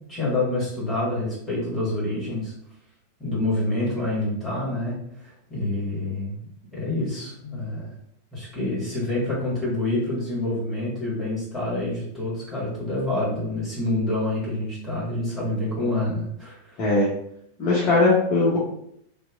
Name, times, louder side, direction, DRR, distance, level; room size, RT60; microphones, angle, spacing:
voice 1, 0.1-2.5 3.2-7.9 8.3-16.8, left 2 dB, 15° left, -7 dB, 1.5 m, -27 dB
voice 2, 17.6-18.6, left 3 dB, 40° left, -7 dB, 0.7 m, -19 dB
2.8 x 2.1 x 2.3 m, 0.71 s
figure-of-eight pair, 90°, 0 cm